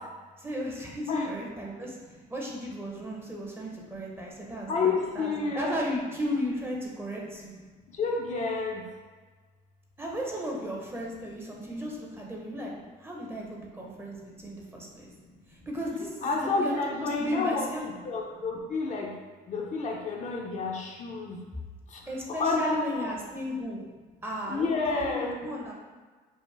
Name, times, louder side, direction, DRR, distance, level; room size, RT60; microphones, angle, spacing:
voice 1, 0.4-2.0 2.3-7.5 10.0-15.1 15.5-17.8 22.1-23.8 24.2-25.7, equal, 15° right, -2 dB, 0.7 m, -35 dB
voice 2, 4.7-5.8 8.0-8.8 16.2-19.1 19.5-21.4 22.4-23.1 24.5-25.5, left 3 dB, 45° left, 0 dB, 0.6 m, -29 dB
5.3 x 2.1 x 3.3 m, 1.4 s
cardioid pair, 110°, 17 cm